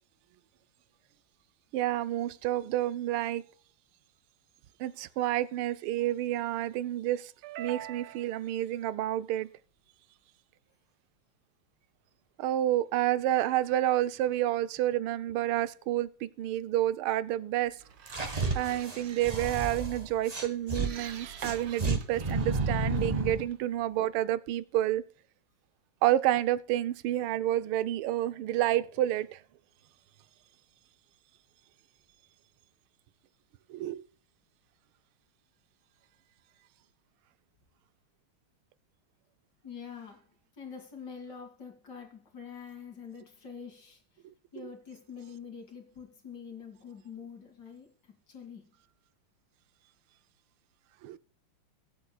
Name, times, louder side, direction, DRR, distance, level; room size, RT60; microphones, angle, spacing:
voice 1, 1.7-3.4 4.8-9.5 12.4-17.8 18.5-25.0 26.0-29.4 33.7-34.0 51.0-51.2, right 13 dB, 85° right, 1.5 m, -29 dB
sound 1, 17.6-24.1, right 7 dB, 65° right, 1.7 m, -48 dB
sound 2, 18.1-20.9 21.4-23.5, right 3 dB, 20° right, 1.2 m, -31 dB
voice 2, 39.6-40.2 40.6-44.0 44.5-48.7, left 6 dB, 55° left, 2.9 m, -45 dB
22.0 x 8.1 x 2.3 m
omnidirectional pair, 2.3 m